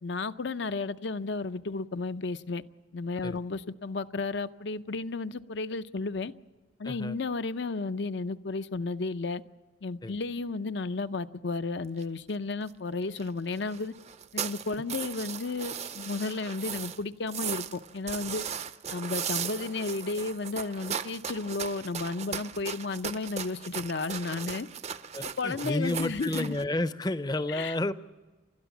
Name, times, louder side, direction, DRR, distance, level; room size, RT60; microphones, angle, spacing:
voice 1, 0.0-2.6 2.9-6.3 6.8-9.4 9.8-13.9 14.3-18.4 18.9-24.7 25.4-26.6 27.5-27.7, left 3 dB, 65° left, 13 dB, 0.6 m, -33 dB
voice 2, 6.8-7.2 10.0-10.1 25.1-27.9, left 1 dB, 20° left, 14 dB, 0.6 m, -31 dB
sound 1, 12.0-12.1 12.3-12.4 12.6-12.7 13.0-13.3 13.5-17.0 17.3-26.6, right 8 dB, 35° right, 0.5 m, -37 dB
29.5 x 13.0 x 7.2 m, 1.2 s
head